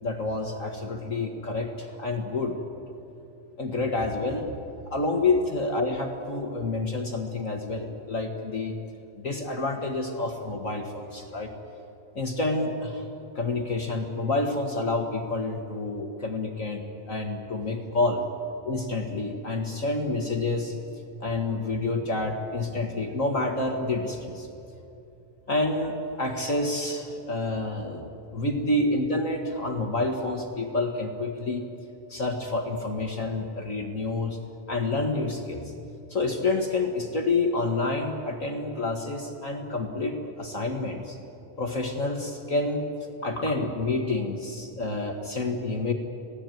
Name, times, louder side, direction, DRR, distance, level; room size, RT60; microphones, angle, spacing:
voice 1, 0.0-2.6 3.6-4.5 4.9-8.7 9.1-11.5 12.1-13.1 13.3-16.8 17.1-18.2 18.6-20.8 21.2-24.5 25.5-31.6 32.1-34.4 34.7-35.7 36.1-41.2 41.6-42.8 43.2-45.9, left 2 dB, 45° left, 4 dB, 1.0 m, -28 dB
27.0 x 18.0 x 9.2 m, 2.8 s
omnidirectional pair, 4.0 m